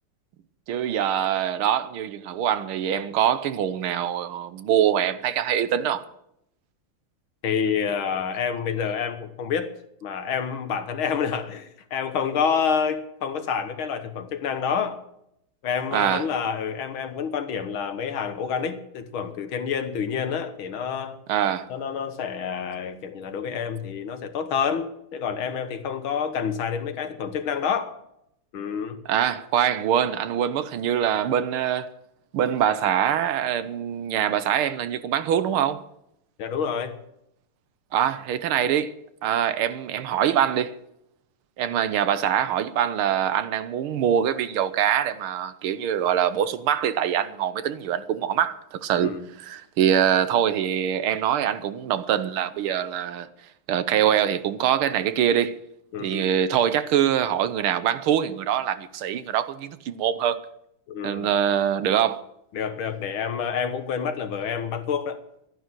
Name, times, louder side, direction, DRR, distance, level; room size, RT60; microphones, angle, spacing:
voice 1, 0.7-6.0 15.9-16.3 21.3-21.7 29.1-31.9 32.3-35.8 37.9-38.9 39.2-40.8 41.6-53.3 53.7-55.6 56.0-60.4 61.0-62.2, right 9 dB, 75° right, 1.7 m, -24 dB
voice 2, 7.4-9.7 10.0-15.0 15.6-21.2 21.7-28.0 28.5-29.0 36.4-36.9 49.0-49.3 55.9-56.3 60.9-61.3 62.5-65.2, left 7 dB, 70° left, 2.0 m, -28 dB
13.0 x 11.0 x 7.6 m
omnidirectional pair, 2.4 m